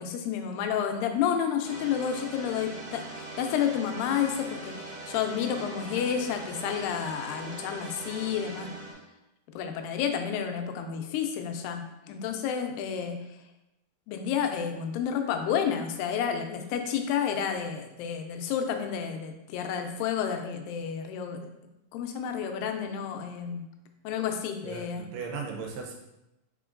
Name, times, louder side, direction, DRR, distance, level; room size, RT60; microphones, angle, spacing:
voice 1, 0.0-8.7 9.6-13.2 14.1-21.5 21.9-23.6 24.0-25.1, left 8 dB, 85° left, 5 dB, 2.2 m, -30 dB
sound 1, 1.6-8.9, right 2 dB, 55° right, 2.0 m, -41 dB
voice 2, 24.6-26.0, right 5 dB, 85° right, 0 dB, 2.3 m, -37 dB
5.0 x 3.7 x 2.4 m, 0.91 s
omnidirectional pair, 3.9 m